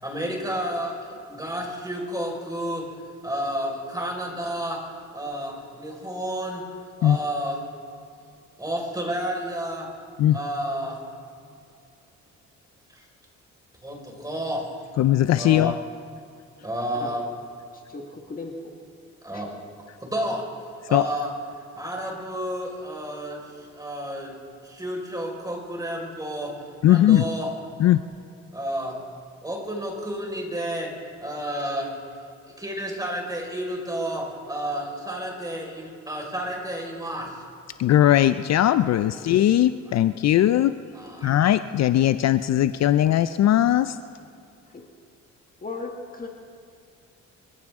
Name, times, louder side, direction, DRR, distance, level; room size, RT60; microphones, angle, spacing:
voice 1, 0.0-2.9 3.2-4.8 5.1-6.6 7.0-7.6 8.6-9.9 10.3-11.0 12.9-13.0 13.8-14.7 15.3-15.7 16.6-17.2 19.2-19.5 20.0-20.5 20.9-21.3 21.7-24.3 24.6-26.5 26.8-27.5 28.5-29.0 29.4-30.9 31.2-31.9 32.6-37.4 39.9-40.0 40.3-40.4 40.9-41.3, right 1 dB, 10° right, 0 dB, 4.8 m, -31 dB
voice 2, 15.0-15.7 20.9-21.0 26.8-27.3 27.8-28.0 37.8-40.7 41.2-44.0, left 12 dB, 60° left, 12 dB, 0.5 m, -19 dB
voice 3, 16.9-17.3 17.7-18.7 19.3-19.5 39.1-39.2 44.7-44.8 45.6-46.3, left 3 dB, 30° left, 1 dB, 1.6 m, -37 dB
25.5 x 15.5 x 3.6 m, 2.4 s
cardioid pair, 90°, 30 cm